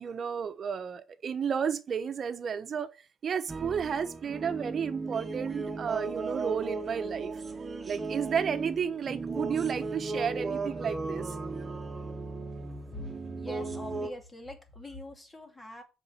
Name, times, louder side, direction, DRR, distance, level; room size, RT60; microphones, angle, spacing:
voice 1, 0.0-2.9 3.2-7.3 7.9-11.3, right 7 dB, 50° right, 1.0 m, -32 dB
sound 1, 3.5-14.1, right 3 dB, 30° right, 1.4 m, -36 dB
voice 2, 13.3-15.8, left 1 dB, 20° left, 2.5 m, -44 dB
6.9 x 5.4 x 6.1 m
cardioid pair, 90°, 0 cm